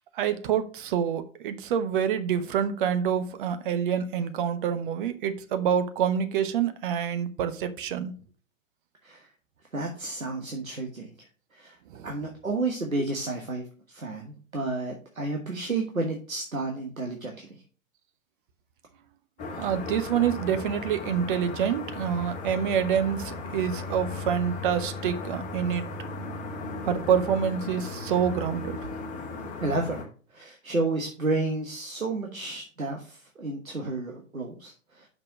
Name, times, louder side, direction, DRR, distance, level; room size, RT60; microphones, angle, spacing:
voice 1, 0.1-8.1 11.9-12.1 19.6-25.9 26.8-28.9, right 8 dB, 40° right, 1.0 m, -27 dB
voice 2, 9.7-11.8 12.0-17.6 29.6-30.1 30.3-35.1, right 3 dB, 85° right, 1.3 m, -31 dB
sound 1, 19.4-30.0, left 3 dB, 20° left, 1.3 m, -36 dB
6.0 x 4.4 x 6.3 m
figure-of-eight pair, 105°, 40 cm